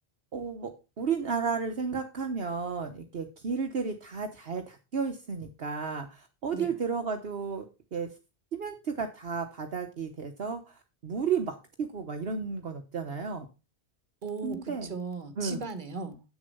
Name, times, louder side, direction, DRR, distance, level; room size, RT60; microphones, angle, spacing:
voice 1, 0.3-7.7 7.9-8.1 8.5-13.5 14.4-14.9 15.4-15.6, right 5 dB, 60° right, 1.2 m, -33 dB
voice 2, 14.2-16.2, right 4 dB, 45° right, 1.5 m, -37 dB
8.6 x 6.8 x 5.4 m
omnidirectional pair, 1.1 m